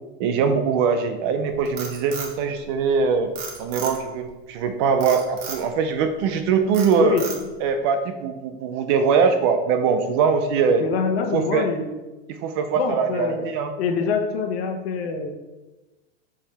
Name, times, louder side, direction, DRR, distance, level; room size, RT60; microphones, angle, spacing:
voice 1, 0.2-3.3 3.6-7.2 7.6-10.8 11.3-11.6 12.4-13.7, right 6 dB, 25° right, 7 dB, 0.4 m, -22 dB
Frog, 1.5-3.0 3.4-4.2 5.0-5.7 6.1-6.4 6.7-7.7, right 5 dB, 65° right, 2.3 m, -34 dB
voice 2, 7.0-7.5 10.8-11.9 12.7-13.4 13.8-15.3, left 5 dB, 70° left, 4 dB, 1.2 m, -25 dB
7.2 x 7.0 x 3.4 m, 1.1 s
supercardioid pair, 165°, 32 cm